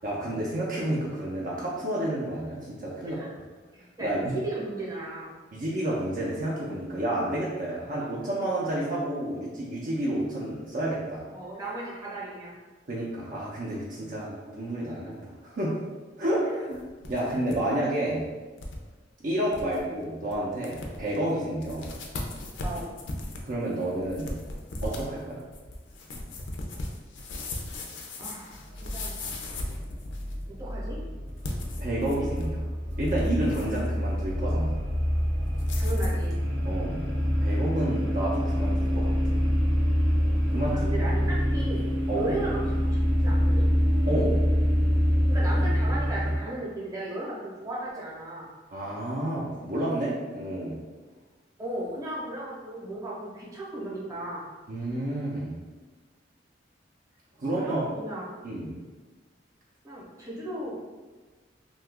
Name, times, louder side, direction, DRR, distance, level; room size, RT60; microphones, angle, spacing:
voice 1, 0.0-3.2 4.0-4.4 5.5-11.2 12.9-15.8 16.2-16.8 17.1-18.3 19.2-21.9 23.4-24.4 24.8-25.4 31.8-32.7 33.0-34.8 36.6-37.1 37.4-39.4 40.5-40.9 42.1-42.3 44.1-44.4 48.7-50.8 54.7-55.6 57.4-57.9 58.4-58.8, right 1 dB, 50° right, -5 dB, 0.5 m, -30 dB
voice 2, 3.7-5.3 11.3-12.5 16.5-16.6 17.2-17.3 22.6-22.9 28.2-29.2 30.6-31.0 35.7-36.4 40.7-41.9 42.1-43.7 45.3-48.5 51.6-54.4 57.4-58.2 59.8-60.8, right 1 dB, 20° right, -5 dB, 0.8 m, -36 dB
sound 1, 16.7-17.6 17.9-18.0 18.6-18.8 19.2-19.3 19.5-19.8 20.3-20.4 20.6-21.2 21.6-30.4 31.3-32.6 32.9-33.9 35.6-36.2, left 2 dB, 80° left, 0.5 m, -37 dB
sound 2, 28.5-46.4, equal, 90° right, 0.7 m, -26 dB
2.8 x 2.3 x 3.4 m, 1.3 s
head